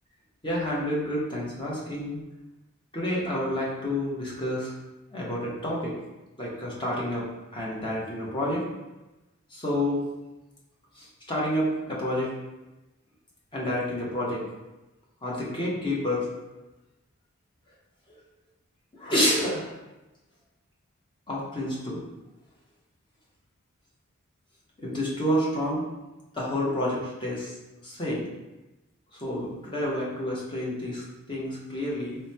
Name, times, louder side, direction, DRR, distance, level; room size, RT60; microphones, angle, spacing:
voice 1, 0.4-2.2 2.9-4.8 5.1-5.9 6.4-7.3 7.5-8.6 9.5-10.0 11.0-12.3 13.5-14.4 15.2-16.3 18.9-19.7 21.3-22.0 24.8-25.9 26.3-27.5 27.8-28.3 29.1-32.2, left 1 dB, 25° left, -5 dB, 0.8 m, -29 dB
2.9 x 2.1 x 4.0 m, 1.0 s
head